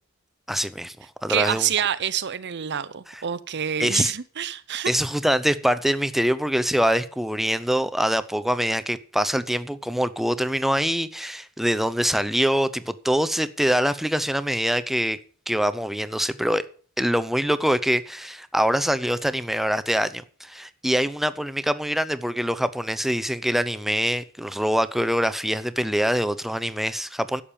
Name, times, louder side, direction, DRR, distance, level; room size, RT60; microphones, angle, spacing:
voice 1, 0.5-1.0 1.2-1.7 3.1-3.2 3.8-4.1 4.8-15.2 15.5-16.6 17.0-27.4, equal, ahead, 0.7 m, -24 dB
voice 2, 1.3-4.9, right 9 dB, 55° right, 0.7 m, -27 dB
11.5 x 7.4 x 8.6 m
head